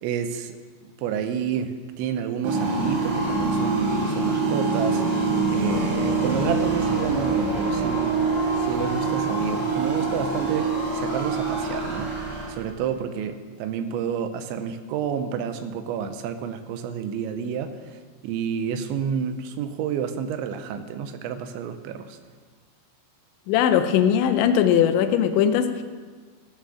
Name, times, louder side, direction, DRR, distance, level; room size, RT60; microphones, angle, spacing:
voice 1, 0.0-0.6 1.0-5.0 5.5-8.2 8.6-22.2, right 7 dB, 80° right, 9 dB, 3.0 m, -30 dB
sound 1, 2.4-12.8, right 3 dB, 45° right, 4.6 m, -25 dB
voice 2, 23.5-25.8, left 9 dB, 85° left, 8 dB, 3.0 m, -20 dB
15.5 x 7.5 x 6.2 m, 1.5 s
omnidirectional pair, 5.3 m